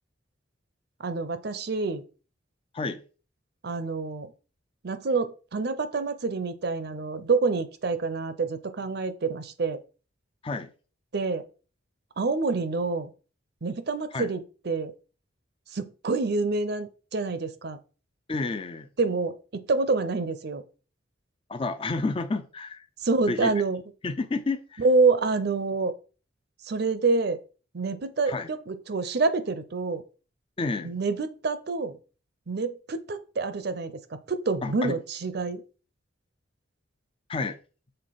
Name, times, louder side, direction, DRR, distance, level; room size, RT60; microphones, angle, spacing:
voice 1, 1.0-2.0 3.6-4.3 4.8-9.8 11.1-11.4 12.2-13.1 13.6-14.9 15.7-17.8 19.0-20.6 23.0-23.8 24.8-25.9 26.7-27.4 27.7-30.0 30.8-32.0 32.5-33.9 34.3-35.6, right 3 dB, 55° right, 12 dB, 0.6 m, -27 dB
voice 2, 18.3-18.9 21.5-22.9 23.3-23.5 24.0-24.9 28.3-28.5 30.6-30.9 34.6-34.9 37.3-37.6, left 3 dB, 30° left, 8 dB, 0.4 m, -30 dB
6.7 x 3.8 x 4.0 m, 0.36 s
head